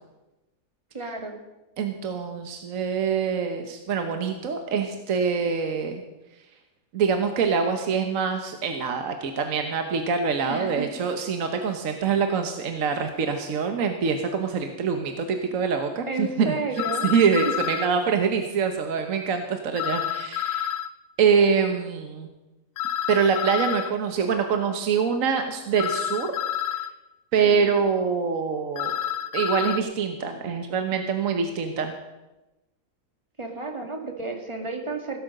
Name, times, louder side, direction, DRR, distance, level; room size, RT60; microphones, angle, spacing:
voice 1, 0.9-1.4 10.5-10.9 16.1-17.2 27.5-27.7 33.4-35.2, right 3 dB, 20° right, 3 dB, 1.9 m, -32 dB
voice 2, 1.8-6.0 6.9-16.5 17.0-20.7 21.2-22.3 23.1-26.4 26.7-26.8 27.3-29.0 29.3-31.9, right 6 dB, 70° right, 6 dB, 1.4 m, -25 dB
sound 1, 16.8-17.9 19.8-20.9 22.8-23.9 25.8-26.9 28.8-29.8, left 10 dB, 75° left, 1.0 m, -29 dB
16.5 x 8.6 x 6.5 m, 1.0 s
omnidirectional pair, 1.5 m